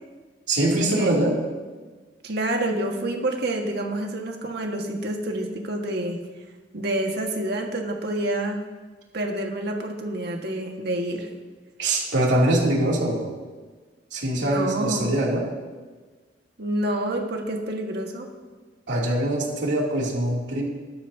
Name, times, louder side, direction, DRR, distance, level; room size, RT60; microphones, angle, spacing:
voice 1, 0.5-1.4 11.8-13.3 14.1-15.5 18.9-20.6, right 1 dB, 85° right, -3 dB, 2.8 m, -23 dB
voice 2, 2.2-6.2 6.7-8.6 9.1-11.3 14.4-15.1 16.6-18.3, right 1 dB, 65° right, 2 dB, 1.7 m, -28 dB
20.0 x 11.5 x 2.8 m, 1.4 s
head